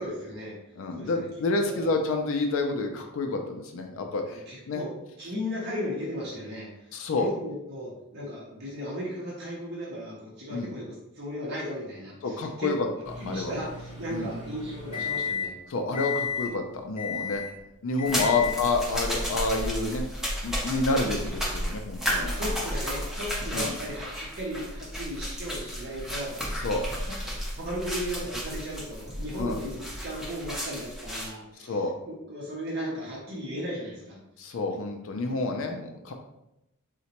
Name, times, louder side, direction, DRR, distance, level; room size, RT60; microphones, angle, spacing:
voice 1, 0.0-0.6 0.9-1.2 1.7-1.9 4.3-15.5 16.4-16.5 18.1-18.6 22.1-27.0 27.2-34.2, equal, 45° right, -4 dB, 0.6 m, -36 dB
voice 2, 0.8-4.8 6.9-7.3 10.5-10.7 12.2-12.9 13.3-13.5 14.1-14.3 15.7-17.4 17.8-20.1 20.4-22.4 23.5-23.7 26.6-26.8 29.4-29.6 31.6-31.9 34.4-36.1, left 3 dB, 65° left, 4 dB, 0.4 m, -29 dB
Microwave oven, 13.0-15.6 15.9-16.5 17.0-17.6 18.0-18.6, left 7 dB, 30° left, 0.7 m, -34 dB
sound 1, 18.1-31.3, equal, ahead, 0.5 m, -33 dB
3.8 x 2.1 x 2.9 m, 0.87 s
head